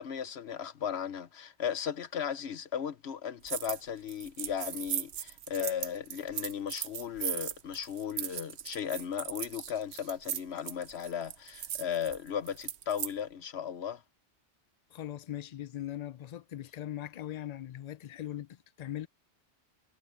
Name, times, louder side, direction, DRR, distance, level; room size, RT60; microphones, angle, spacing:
voice 1, 0.0-14.0, left 8 dB, 70° left, 1.1 m, -36 dB
sound 1, 3.5-3.8 4.1-13.1, right 10 dB, 70° right, 1.0 m, -38 dB
voice 2, 14.9-19.1, left 12 dB, 55° left, 0.5 m, -40 dB
omnidirectional pair, 1.2 m